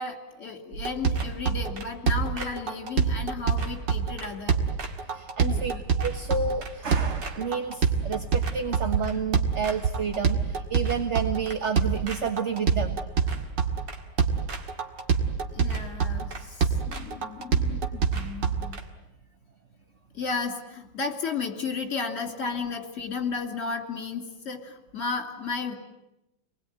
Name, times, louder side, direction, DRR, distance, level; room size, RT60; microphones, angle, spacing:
voice 1, 0.0-4.6 5.4-5.8 15.5-18.8 20.1-25.8, left 4 dB, 45° left, 4 dB, 3.2 m, -34 dB
sound 1, 0.7-18.8, right 6 dB, 80° right, 2.7 m, -26 dB
voice 2, 5.1-5.7 6.0-13.0, right 5 dB, 40° right, 7 dB, 1.5 m, -30 dB
28.5 x 20.5 x 9.3 m, 0.92 s
omnidirectional pair, 1.9 m